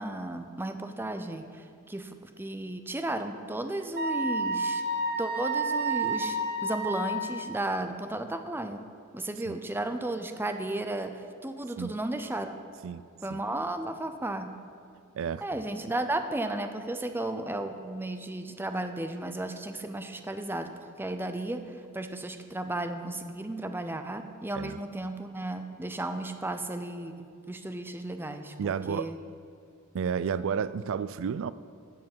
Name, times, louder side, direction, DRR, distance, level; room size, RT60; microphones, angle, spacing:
voice 1, 0.0-4.8 5.2-8.9 9.1-12.6 13.2-14.6 15.4-29.2, right 1 dB, 10° right, 7 dB, 0.5 m, -34 dB
Wind instrument woodwind instrument, 4.0-7.4, right 2 dB, 50° right, 0.8 m, -30 dB
voice 2, 15.1-15.4 24.5-24.8 28.6-29.1 29.9-31.5, right 7 dB, 65° right, 16 dB, 0.4 m, -31 dB
15.0 x 5.7 x 5.5 m, 2.3 s
head